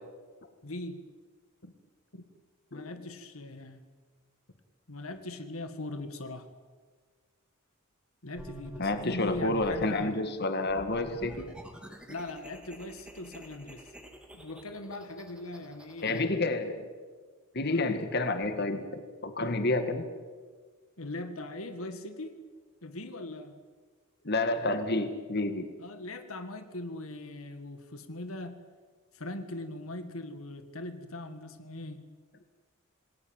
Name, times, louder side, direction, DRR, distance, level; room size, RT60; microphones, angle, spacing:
voice 1, 0.6-1.0 1.6-1.7 2.1-2.2 2.7-3.8 4.9-6.5 8.2-10.2 12.1-13.9 14.3-16.4 17.7-18.0 21.0-22.4 22.8-23.6 25.8-28.6 29.1-32.0, left 2 dB, 75° left, 9 dB, 1.9 m, -40 dB
sound 1, 8.4-10.0 10.7-16.2, equal, 5° right, 2.6 m, -48 dB
voice 2, 8.8-11.5 16.0-16.8 17.5-20.1 24.3-25.7, left 2 dB, 50° left, 8 dB, 2.0 m, -29 dB
27.5 x 20.0 x 9.0 m, 1.5 s
head